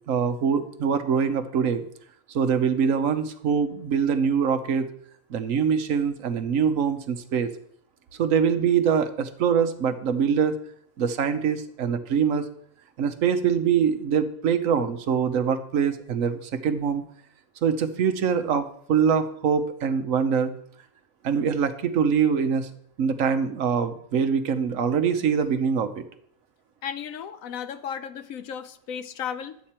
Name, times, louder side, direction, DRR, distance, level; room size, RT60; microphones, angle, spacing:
voice 1, 0.1-1.8 2.3-4.9 5.3-7.5 8.2-10.5 11.0-12.5 13.0-17.0 17.6-20.5 21.2-22.7 23.0-26.0, right 7 dB, 65° right, 10 dB, 1.2 m, -24 dB
voice 2, 26.8-29.6, left 8 dB, 70° left, 12 dB, 1.1 m, -34 dB
11.5 x 8.3 x 4.4 m, 0.65 s
omnidirectional pair, 1.5 m